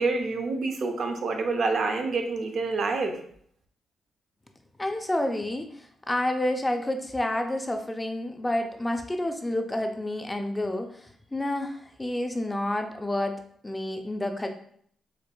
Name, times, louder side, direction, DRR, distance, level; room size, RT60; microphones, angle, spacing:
voice 1, 0.0-3.2, right 3 dB, 60° right, 4 dB, 0.5 m, -27 dB
voice 2, 4.8-14.5, left 1 dB, 15° left, 5 dB, 0.4 m, -29 dB
4.4 x 2.4 x 2.3 m, 0.62 s
cardioid pair, 90°, 0 cm